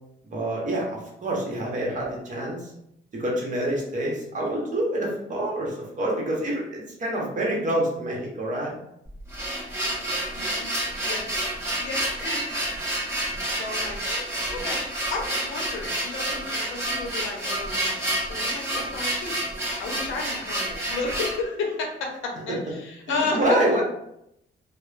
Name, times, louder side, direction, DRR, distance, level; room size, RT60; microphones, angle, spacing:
voice 1, 0.2-2.7 3.1-8.7 23.1-23.8, right 1 dB, 40° right, -3 dB, 1.0 m, -27 dB
sound 1, 9.1-21.4, right 1 dB, 15° right, 1.1 m, -29 dB
voice 2, 10.3-10.7 11.0-11.3 11.8-12.5 13.5-19.4 19.8-23.6, left 3 dB, 85° left, 1 dB, 0.6 m, -32 dB
2.8 x 2.0 x 2.4 m, 0.78 s
cardioid pair, 90°, 20 cm